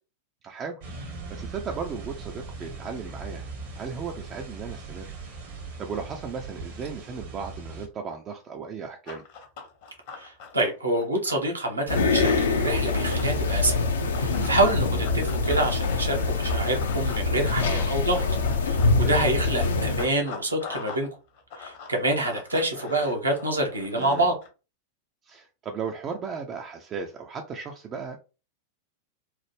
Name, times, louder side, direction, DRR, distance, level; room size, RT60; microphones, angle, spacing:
voice 1, 0.4-0.9 1.3-3.5 3.7-5.1 5.8-9.2 17.6-17.9 19.0-19.3 23.9-24.3 25.2-28.2, right 5 dB, 30° right, 0.3 m, -36 dB
sound 1, 0.8-7.9, right 3 dB, 55° right, 0.8 m, -39 dB
Run, 9.1-13.4 14.1-21.1 21.3-24.5, left 5 dB, 50° left, 0.8 m, -42 dB
voice 2, 10.2-13.8 14.2-18.2 18.6-21.1 21.6-24.3, right 2 dB, 80° right, 0.7 m, -26 dB
sound 2, 11.9-20.1, left 3 dB, 65° left, 0.4 m, -24 dB
3.1 x 2.0 x 3.2 m
figure-of-eight pair, 90°, 0 cm